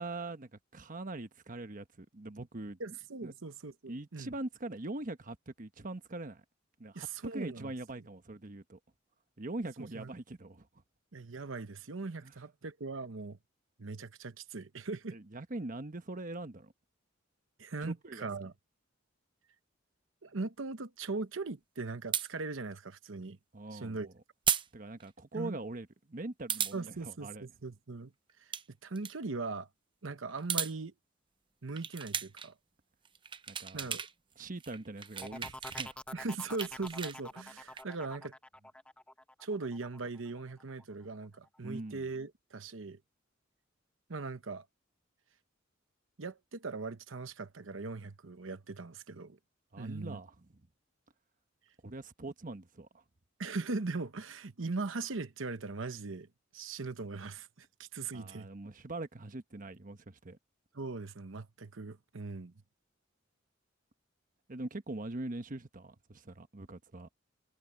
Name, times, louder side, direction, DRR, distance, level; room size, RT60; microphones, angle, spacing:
voice 1, 0.0-2.8 3.2-3.3 3.9-6.4 6.8-7.1 7.3-8.8 9.4-10.7 12.2-12.4 15.1-16.7 17.8-18.3 23.5-24.1 24.7-27.5 33.5-34.0 34.4-36.0 41.6-42.1 49.7-50.6 51.8-53.0 58.1-60.4 64.5-67.2, right 2 dB, 45° right, 1.1 m, -42 dB
voice 2, 2.8-4.3 6.9-7.7 9.9-10.1 11.1-13.4 13.8-15.2 17.6-18.5 20.2-23.4 23.7-24.1 25.3-25.6 26.7-28.1 28.4-28.5 28.8-29.7 30.0-30.9 31.6-32.5 33.7-34.1 36.1-38.3 39.4-43.0 44.1-44.7 46.2-49.4 49.8-50.2 53.4-56.3 56.5-58.5 60.7-62.5, right 3 dB, 80° right, 1.0 m, -40 dB
sound 1, 22.1-22.3 24.5-24.7 25.0-25.1 26.5-26.8 28.3-28.6 28.9-29.1 30.3-30.7 31.8-32.5 33.0-34.1 34.4-35.9 36.3-37.8, right 8 dB, 25° right, 0.7 m, -35 dB
sound 2, 35.2-40.8 41.2-41.7, left 1 dB, 5° left, 1.2 m, -48 dB
head